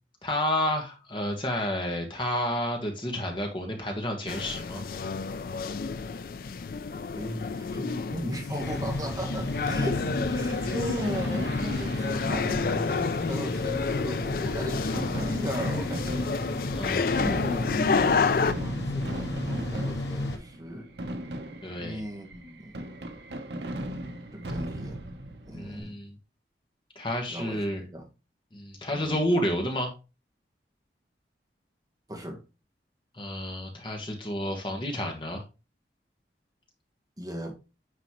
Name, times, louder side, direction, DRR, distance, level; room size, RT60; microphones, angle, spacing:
voice 1, 0.2-4.8 16.7-17.2 21.6-22.0 25.5-26.1 26.9-27.8 28.5-29.9 33.1-35.4, left 1 dB, 30° left, 1.4 m, -30 dB
sound 1, 4.3-18.5, left 5 dB, 55° left, 0.4 m, -30 dB
voice 2, 7.1-16.3 17.2-20.9 21.8-22.8 24.3-25.0 25.4-26.0 27.3-27.6 27.9-28.0 28.9-29.2 32.1-32.4 37.2-37.5, equal, 20° right, 1.4 m, -36 dB
sound 2, 8.6-20.4, left 1 dB, 80° left, 1.6 m, -33 dB
Fireworks, 9.7-25.8, right 1 dB, 80° right, 0.9 m, -39 dB
9.5 x 4.1 x 3.0 m
head